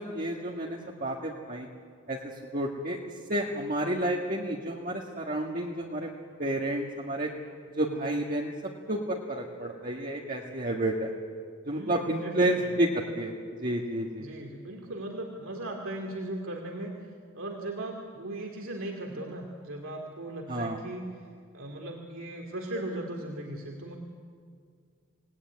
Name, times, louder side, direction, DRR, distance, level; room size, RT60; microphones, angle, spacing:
voice 1, 0.0-1.7 2.1-3.0 3.3-6.1 6.4-7.3 7.7-8.5 8.9-11.1 11.7-13.3 13.6-14.3 20.5-20.8, right 1 dB, 40° right, -2 dB, 1.8 m, -30 dB
voice 2, 11.7-12.7 14.2-21.2 21.5-24.0, right 1 dB, 75° right, 1 dB, 2.5 m, -38 dB
26.5 x 19.0 x 9.7 m, 2.1 s
head